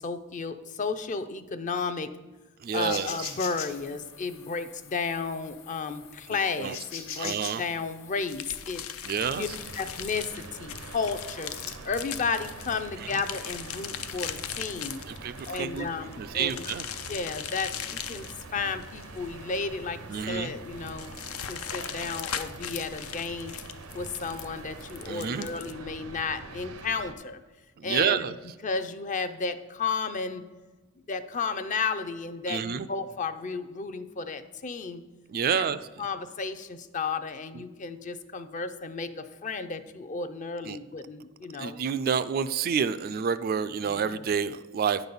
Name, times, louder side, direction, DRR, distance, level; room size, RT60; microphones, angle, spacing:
voice 1, 0.0-2.2 2.7-8.8 9.4-9.5 9.8-11.5 11.9-15.0 15.5-16.7 17.1-20.0 20.3-21.1 21.5-23.5 23.9-27.4 27.8-28.2 28.6-30.5 31.1-35.0 35.5-35.6 36.0-41.8 43.8-44.2, left 4 dB, 35° left, 10 dB, 0.5 m, -33 dB
voice 2, 2.6-3.3 6.6-6.8 7.2-7.6 9.0-9.5 15.1-15.9 16.2-16.9 20.1-20.5 25.0-25.5 27.8-28.3 32.5-32.9 35.3-35.8 40.7-40.8 41.6-45.0, right 7 dB, 45° right, 12 dB, 0.3 m, -28 dB
sound 1, 2.8-10.2, left 7 dB, 70° left, 1.1 m, -43 dB
sound 2, 8.3-25.7, left 9 dB, 85° left, 0.5 m, -39 dB
sound 3, 9.2-27.1, right 3 dB, 85° right, 0.7 m, -44 dB
9.7 x 4.0 x 6.8 m, 1.2 s
head